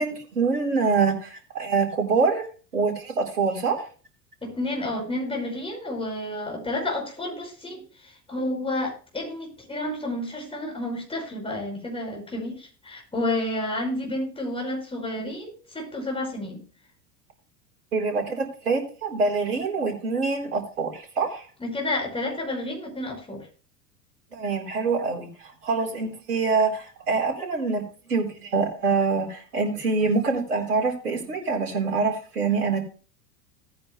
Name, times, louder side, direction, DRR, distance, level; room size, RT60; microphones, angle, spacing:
voice 1, 0.0-2.5 2.7-3.8 17.9-21.5 24.3-27.8 28.1-32.8, right 4 dB, 70° right, 1 dB, 4.3 m, -25 dB
voice 2, 4.4-16.6 21.6-23.5, left 1 dB, 10° left, 1 dB, 5.4 m, -30 dB
17.5 x 9.5 x 2.2 m, 0.38 s
figure-of-eight pair, 80°, 48 cm